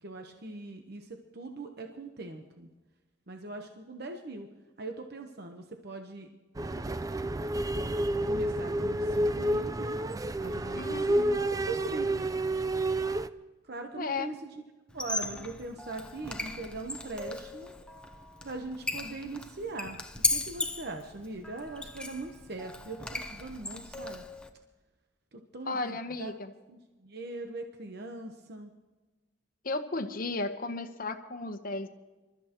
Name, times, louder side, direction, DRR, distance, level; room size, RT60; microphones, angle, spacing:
voice 1, 0.0-2.7 3.3-4.5 4.8-6.3 8.3-10.0 10.4-12.2 13.7-14.5 14.9-17.7 18.4-20.0 20.3-24.2 25.3-26.3 26.7-28.7, right 2 dB, 60° right, 4 dB, 1.1 m, -41 dB
sound 1, 6.6-13.3, right 1 dB, 20° right, 0.4 m, -30 dB
voice 2, 10.7-11.5 13.9-14.3 25.6-26.5 29.6-31.9, left 3 dB, 50° left, 8 dB, 1.0 m, -34 dB
Squeak, 14.9-24.5, left 2 dB, 5° left, 0.9 m, -37 dB
27.0 x 13.5 x 3.0 m, 1.2 s
head